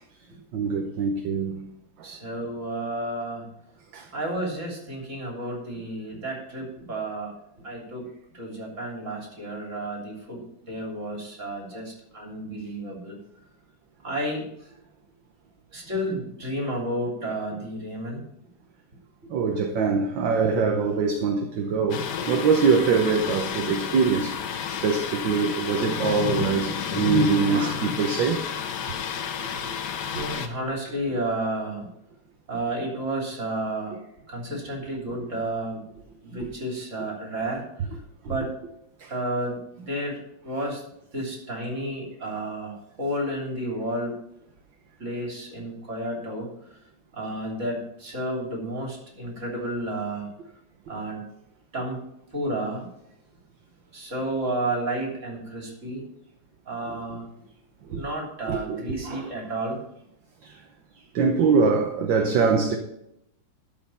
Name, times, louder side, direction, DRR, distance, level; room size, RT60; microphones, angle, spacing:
voice 1, 0.5-1.6 3.9-4.0 19.3-24.4 24.7-28.4 30.1-30.3 39.0-39.1 57.9-58.0 58.5-59.3 60.4-60.6 61.1-62.8, right 5 dB, 65° right, 1.6 m, -23 dB
voice 2, 2.0-3.5 4.1-7.3 7.6-8.1 8.3-13.2 14.0-14.7 15.7-18.2 30.1-31.9 32.5-34.0 34.3-35.8 36.2-37.7 38.2-38.6 39.1-40.8 41.1-42.7 43.0-44.2 45.0-46.5 47.1-50.3 50.9-51.2 51.7-52.0 52.3-52.9 53.9-56.0 56.7-57.5 57.9-59.8, right 1 dB, 35° right, 3.5 m, -31 dB
Thunder, 21.9-30.5, left 8 dB, 60° left, 1.3 m, -30 dB
12.5 x 5.8 x 5.6 m
omnidirectional pair, 2.4 m